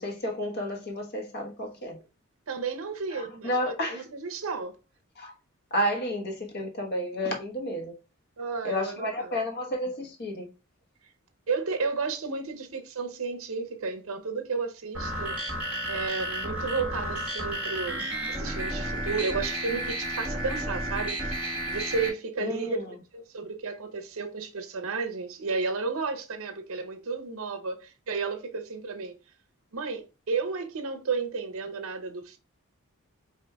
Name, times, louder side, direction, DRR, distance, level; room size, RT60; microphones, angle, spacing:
voice 1, 0.0-2.0 3.1-4.0 5.2-5.3 5.7-7.9 8.6-10.5 22.4-22.9, left 1 dB, 45° left, 1.1 m, -31 dB
voice 2, 2.5-4.7 8.4-9.3 11.5-15.4 15.9-22.8 23.1-29.2 29.7-32.4, right 4 dB, 70° right, 0.7 m, -33 dB
sound 1, 14.9-22.1, right 1 dB, 5° right, 1.5 m, -32 dB
4.8 x 2.5 x 3.3 m
head